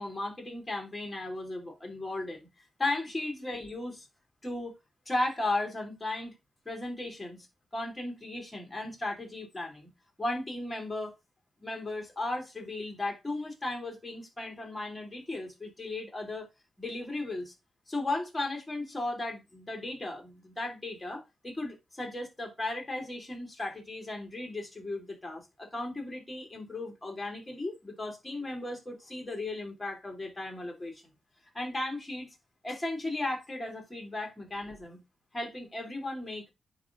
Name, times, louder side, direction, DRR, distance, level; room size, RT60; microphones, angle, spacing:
voice 1, 0.0-2.5 2.8-4.1 4.4-4.7 5.1-6.3 6.6-7.5 7.7-9.9 10.2-11.2 11.6-16.5 16.8-17.5 17.9-31.0 31.5-32.3 32.6-35.0 35.3-36.5, left 2 dB, 15° left, 2.8 m, -36 dB
9.5 x 3.3 x 3.7 m
cardioid pair, 85°, 0 cm